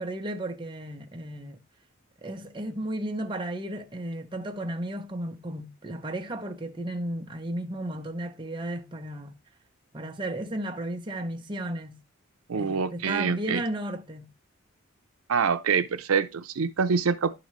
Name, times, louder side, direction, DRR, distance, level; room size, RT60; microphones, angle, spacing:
voice 1, 0.0-1.6 2.2-9.3 9.9-12.0 12.5-14.3, right 1 dB, 25° right, 0.8 m, -34 dB
voice 2, 12.5-13.6 15.3-17.3, right 6 dB, 85° right, 0.5 m, -25 dB
11.5 x 3.8 x 3.0 m
head